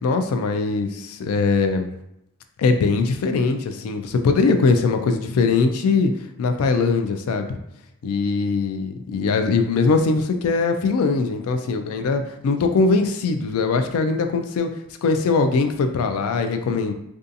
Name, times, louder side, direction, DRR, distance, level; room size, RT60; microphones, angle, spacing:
voice 1, 0.0-1.9 2.6-6.1 6.4-7.6 8.0-14.7 15.0-16.9, left 4 dB, 75° left, 7 dB, 0.3 m, -21 dB
2.5 x 2.3 x 2.5 m, 0.81 s
head